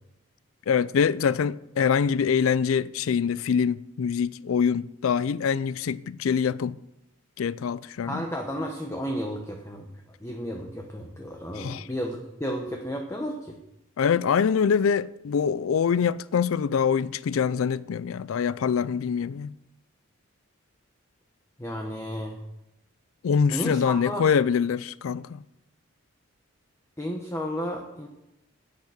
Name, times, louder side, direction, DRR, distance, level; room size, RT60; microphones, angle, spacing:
voice 1, 0.7-6.8 7.4-8.2 11.6-11.9 14.0-19.5 23.2-25.4, left 6 dB, 80° left, 0.4 m, -24 dB
voice 2, 8.1-9.9 10.2-13.6 21.6-22.4 23.5-24.2 27.0-28.1, equal, 15° left, 1.0 m, -32 dB
10.5 x 8.4 x 6.5 m
head